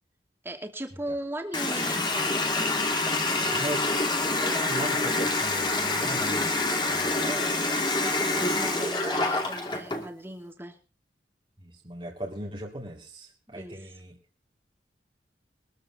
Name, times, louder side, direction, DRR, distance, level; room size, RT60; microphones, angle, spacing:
voice 1, 0.4-2.4 7.2-10.8 13.5-13.9, right 1 dB, 15° right, 4 dB, 2.5 m, -38 dB
Water tap faucet, 1.5-10.1, left 2 dB, 25° left, 2.4 m, -26 dB
voice 2, 3.5-7.3 11.6-14.2, right 1 dB, 30° right, -2 dB, 2.5 m, -38 dB
22.0 x 14.0 x 2.9 m, 0.32 s
head